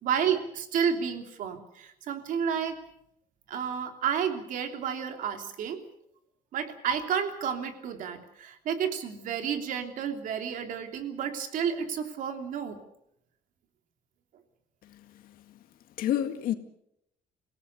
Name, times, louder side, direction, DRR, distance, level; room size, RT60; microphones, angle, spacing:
voice 1, 0.0-2.8 3.5-5.8 6.5-12.8, right 7 dB, 65° right, 3.1 m, -31 dB
voice 2, 14.8-15.3 16.0-16.5, left 11 dB, 75° left, 2.0 m, -30 dB
27.0 x 17.5 x 6.8 m
cardioid pair, 170°, 15 cm